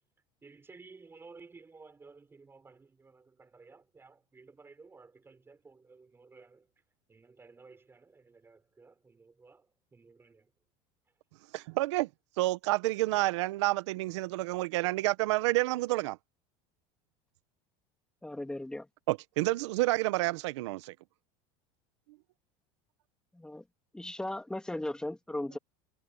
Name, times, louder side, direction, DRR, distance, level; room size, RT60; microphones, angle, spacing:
voice 1, 0.4-6.7 7.1-10.5, right 4 dB, 15° right, 6.3 m, -55 dB
voice 2, 11.5-12.1 12.4-16.2 19.1-20.9, right 19 dB, 90° right, 1.0 m, -29 dB
voice 3, 18.2-18.9 23.3-23.6 23.9-25.6, left 1 dB, 5° left, 2.1 m, -37 dB
supercardioid pair, 130°, 15 cm